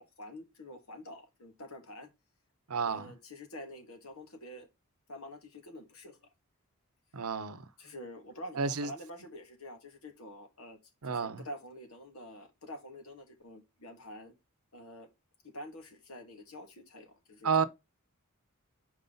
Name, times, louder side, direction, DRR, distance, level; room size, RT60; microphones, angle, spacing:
voice 1, 0.0-2.1 2.9-4.7 5.1-6.3 7.8-10.8 11.0-14.3 14.7-15.1 15.4-17.7, left 1 dB, 75° left, 1.9 m, -47 dB
voice 2, 2.7-3.1 7.1-7.7 8.6-8.9 11.0-11.4 17.4-17.6, right 5 dB, 80° right, 0.8 m, -30 dB
5.5 x 4.7 x 3.9 m
head